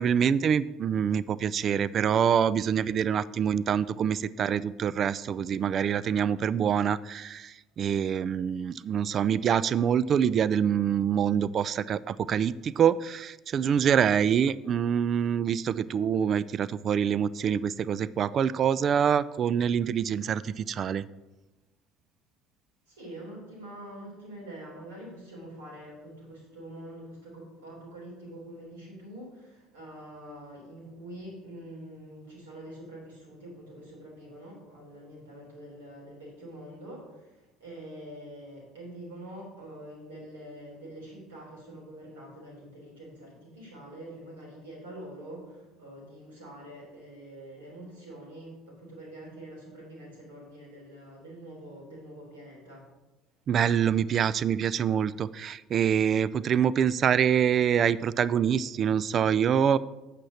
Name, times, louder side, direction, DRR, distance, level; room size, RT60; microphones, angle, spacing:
voice 1, 0.0-21.1 53.5-59.8, right 8 dB, 40° right, 19 dB, 0.3 m, -25 dB
voice 2, 22.9-52.9, right 1 dB, 70° right, -3 dB, 3.7 m, -45 dB
8.9 x 5.9 x 5.6 m, 1.1 s
figure-of-eight pair, 60°, 0 cm